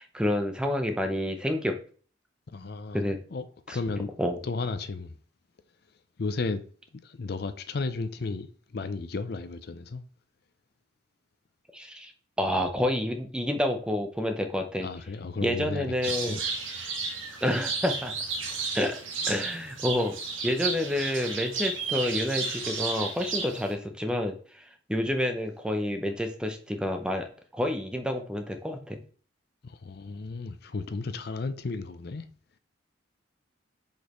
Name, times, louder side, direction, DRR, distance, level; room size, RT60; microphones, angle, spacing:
voice 1, 0.0-1.8 2.9-3.2 3.7-3.8 4.2-4.4 11.7-12.1 12.4-14.9 15.4-16.4 17.4-18.1 18.7-19.0 19.3-20.1 20.4-29.0, left 1 dB, 5° right, 0.7 m, -29 dB
voice 2, 2.5-3.0 3.3-4.1 4.4-5.2 6.2-6.6 6.9-10.0 14.8-16.5 29.6-32.3, left 3 dB, 50° left, 0.5 m, -34 dB
sound 1, 16.0-23.7, right 4 dB, 75° right, 1.4 m, -33 dB
6.3 x 5.2 x 3.0 m
head